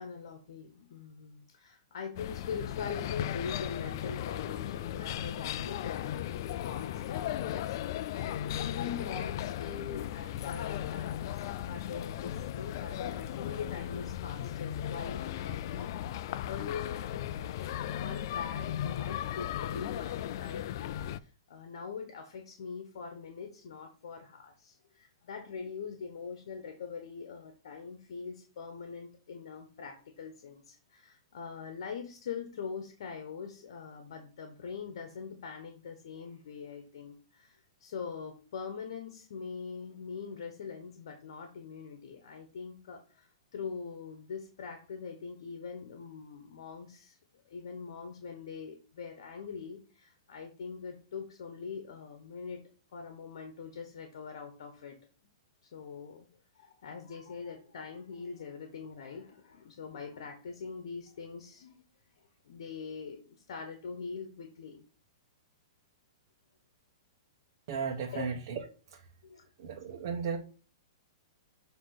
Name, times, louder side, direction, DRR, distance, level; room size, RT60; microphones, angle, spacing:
voice 1, 0.0-52.6 52.9-55.0 55.6-56.3 56.5-61.8 62.4-64.8 68.1-68.2 69.2-69.5, left 6 dB, 65° left, 1.3 m, -43 dB
sound 1, 2.2-21.2, left 11 dB, 45° left, 0.4 m, -36 dB
voice 2, 67.7-68.6 69.6-70.4, right 6 dB, 45° right, 1.1 m, -34 dB
7.5 x 3.1 x 5.9 m
hypercardioid pair, 160°, 3 cm